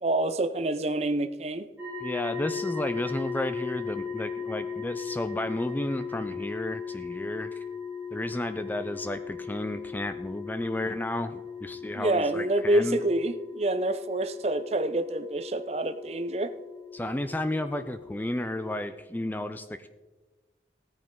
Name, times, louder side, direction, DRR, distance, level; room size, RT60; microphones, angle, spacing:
voice 1, 0.0-1.7 11.9-16.5, right 1 dB, 35° right, 12 dB, 0.6 m, -27 dB
sound 1, 1.8-18.7, left 6 dB, 10° right, 3.6 m, -38 dB
voice 2, 2.0-7.6 8.1-13.0 16.9-19.9, left 1 dB, 10° left, 10 dB, 0.4 m, -32 dB
16.0 x 9.3 x 3.7 m, 1.2 s
head